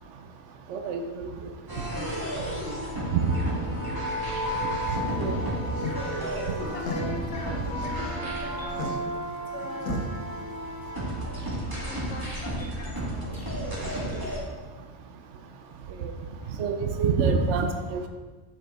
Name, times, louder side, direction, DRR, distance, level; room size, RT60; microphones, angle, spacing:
voice 1, 0.7-1.0 3.1-3.2 5.2-5.4 16.0-16.1 16.6-18.1, right 5 dB, 65° right, 6 dB, 0.8 m, -25 dB
sound 1, 1.7-14.4, right 1 dB, 15° right, 1.4 m, -32 dB
voice 2, 4.1-5.6 6.6-8.9 9.5-10.0 10.9-11.1 11.7-13.3 13.8-14.0 16.4-16.6, left 3 dB, 55° left, 2 dB, 1.2 m, -42 dB
sound 2, 4.3-10.9, left 4 dB, 85° left, 1.4 m, -39 dB
7.6 x 6.1 x 3.5 m, 1.3 s
omnidirectional pair, 1.5 m